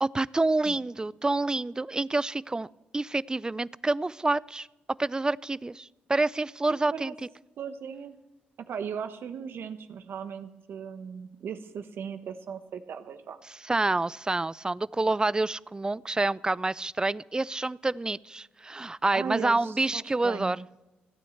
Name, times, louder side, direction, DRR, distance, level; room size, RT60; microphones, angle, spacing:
voice 1, 0.0-4.7 5.0-7.1 13.6-20.6, right 2 dB, 20° right, 22 dB, 0.4 m, -28 dB
voice 2, 7.6-8.2 8.6-13.4 19.1-20.5, right 7 dB, 65° right, 10 dB, 1.1 m, -37 dB
16.0 x 9.3 x 7.9 m, 1.0 s
supercardioid pair, 55°, 4 cm